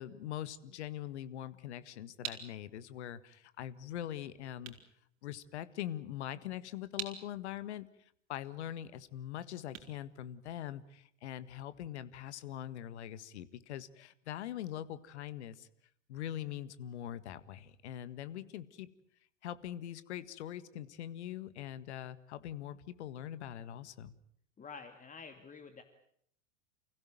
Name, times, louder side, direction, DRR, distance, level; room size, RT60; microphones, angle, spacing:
voice 1, 0.0-4.8 5.2-7.9 8.3-15.7 16.1-18.9 19.4-24.2, left 11 dB, 65° left, 15 dB, 1.8 m, -43 dB
sound 1, 2.2-11.0, right 9 dB, 40° right, 4.6 m, -49 dB
voice 2, 24.6-25.8, left 5 dB, 20° left, 8 dB, 2.3 m, -49 dB
29.5 x 16.0 x 9.3 m, 0.69 s
hypercardioid pair, 90°, 37 cm